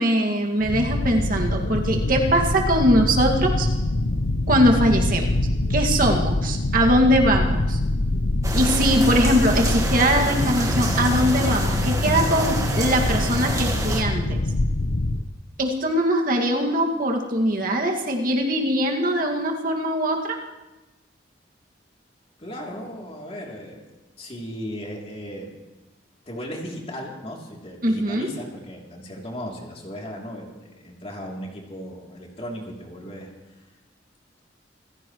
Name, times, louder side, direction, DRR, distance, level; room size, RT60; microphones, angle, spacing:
voice 1, 0.0-3.7 4.5-5.4 5.7-7.8 8.5-14.4 15.6-20.4 27.8-28.3, equal, 50° right, 1 dB, 2.1 m, -21 dB
sound 1, 0.6-15.2, left 2 dB, 80° left, 0.8 m, -24 dB
sound 2, 8.4-14.0, right 1 dB, 20° right, 1.7 m, -28 dB
voice 2, 22.4-23.9 24.2-25.5 26.3-33.3, equal, 35° left, -1 dB, 3.2 m, -36 dB
26.5 x 15.5 x 3.2 m, 1.1 s
head